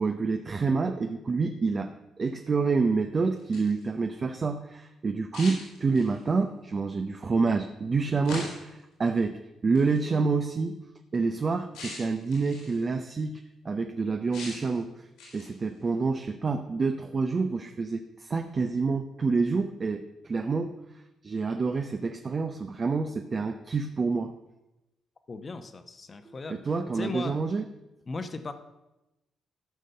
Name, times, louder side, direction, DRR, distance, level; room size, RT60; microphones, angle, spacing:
voice 1, 0.0-10.8 11.1-15.1 15.3-20.7 21.2-24.3 26.3-27.6, right 4 dB, 35° right, 6 dB, 0.7 m, -28 dB
sound 1, 3.3-3.8 5.3-6.3 8.3-8.8 9.8-9.9 11.7-12.8 14.3-14.8 15.2-15.6, left 2 dB, 90° left, 5.0 m, -41 dB
voice 2, 25.3-26.6 26.9-27.3 28.1-28.5, left 3 dB, 35° left, 9 dB, 1.1 m, -37 dB
14.0 x 5.2 x 6.6 m, 0.97 s
cardioid pair, 90°, 0 cm